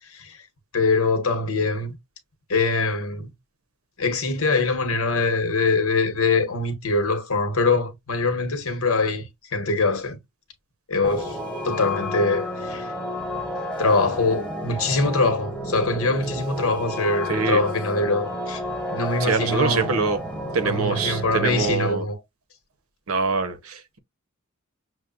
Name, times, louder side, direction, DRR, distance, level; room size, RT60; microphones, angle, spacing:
voice 1, 0.7-1.9 2.5-3.3 4.0-9.3 9.5-10.2 10.9-11.4 11.6-12.9 13.8-18.6 18.9-19.9 20.6-22.2, left 3 dB, 80° left, 1.0 m, -23 dB
sound 1, 11.0-21.7, left 1 dB, 5° left, 1.0 m, -31 dB
voice 2, 17.3-17.6 19.2-20.2 20.5-22.0 23.1-24.0, right 4 dB, 80° right, 0.7 m, -24 dB
6.2 x 2.1 x 2.4 m
head